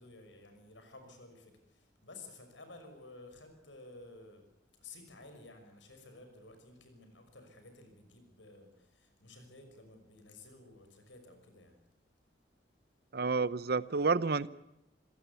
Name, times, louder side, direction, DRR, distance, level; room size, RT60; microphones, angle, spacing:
voice 1, 0.0-4.4 4.8-11.8, left 2 dB, 90° left, 7 dB, 5.9 m, -54 dB
voice 2, 13.1-14.5, right 4 dB, 55° right, 18 dB, 0.8 m, -29 dB
26.5 x 16.5 x 8.3 m, 0.87 s
head